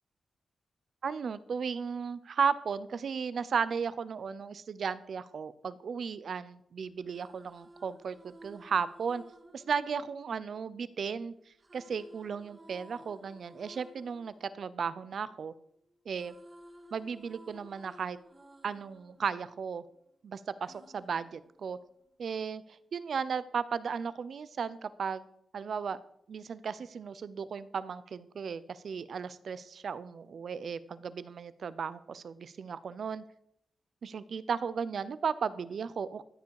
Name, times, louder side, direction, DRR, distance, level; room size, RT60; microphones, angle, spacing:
voice 1, 1.0-9.2 9.5-11.3 11.7-15.5 16.1-16.3 16.9-18.2 18.6-19.8 20.2-21.8 22.2-25.3 25.5-26.0 26.3-33.2 34.0-36.2, right 6 dB, 60° right, 16 dB, 0.7 m, -35 dB
sound 1, 6.9-11.0 11.6-15.6 15.9-20.2 20.7-22.1, right 1 dB, 30° right, 1.9 m, -56 dB
14.0 x 9.5 x 4.8 m, 0.72 s
wide cardioid pair, 135°, 0 cm